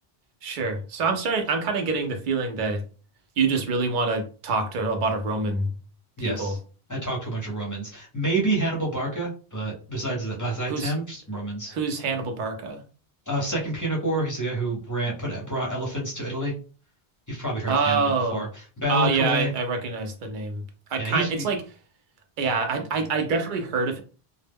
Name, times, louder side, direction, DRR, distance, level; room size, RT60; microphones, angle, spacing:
voice 1, 0.4-2.8 3.4-5.7 6.2-6.5 10.7-10.9 11.7-12.8 17.7-18.5 18.9-20.6 20.9-21.6 22.4-24.0, right 4 dB, 55° right, 5 dB, 0.7 m, -26 dB
voice 2, 6.2-6.6 6.9-11.7 13.3-16.5 17.3-18.0 18.3-19.5 21.0-21.5, right 1 dB, 20° left, -3 dB, 0.6 m, -28 dB
2.1 x 2.0 x 3.4 m, 0.37 s
omnidirectional pair, 1.1 m